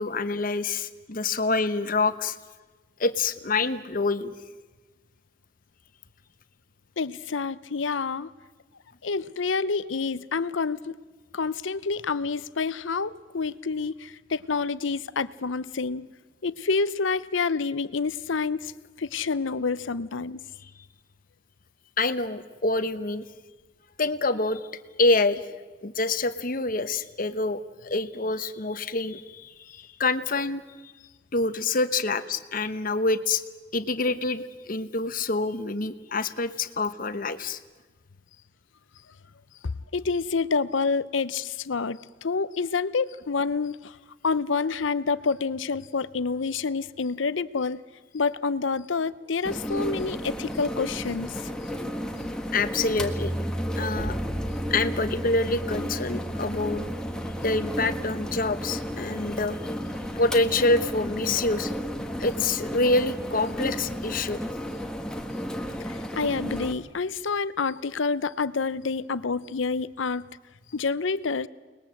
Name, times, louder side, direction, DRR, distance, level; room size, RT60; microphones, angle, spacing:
voice 1, 0.0-2.4 3.0-4.3 22.0-23.2 24.0-24.6 25.0-25.4 25.8-30.9 31.3-33.4 33.7-37.6 52.5-53.3 53.8-54.2 54.7-56.8 57.4-59.6 60.1-61.7 62.2-64.4, left 3 dB, 45° left, 12 dB, 1.1 m, -26 dB
voice 2, 7.0-8.3 9.0-11.0 11.3-16.1 16.4-18.7 19.0-20.5 36.1-36.2 39.6-44.0 44.2-47.8 48.1-51.4 65.8-70.3 70.7-71.5, left 4 dB, 75° left, 17 dB, 0.7 m, -28 dB
sound 1, 49.4-66.7, equal, 5° left, 1.6 m, -33 dB
sound 2, 53.0-64.8, right 1 dB, 40° right, 3.8 m, -38 dB
29.5 x 20.5 x 7.7 m, 1.3 s
head